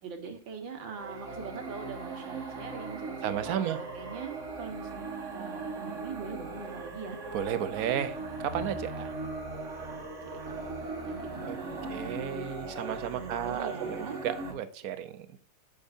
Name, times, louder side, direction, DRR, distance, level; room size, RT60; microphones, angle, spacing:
voice 1, 0.0-7.2 9.8-11.9 13.1-14.2, right 5 dB, 90° right, 2.2 m, -43 dB
sound 1, 0.9-14.5, right 3 dB, 45° right, 1.6 m, -39 dB
voice 2, 3.2-3.8 7.3-9.1 11.4-11.6 11.9-15.3, right 9 dB, 60° right, 1.1 m, -33 dB
8.5 x 6.7 x 2.7 m
omnidirectional pair, 2.0 m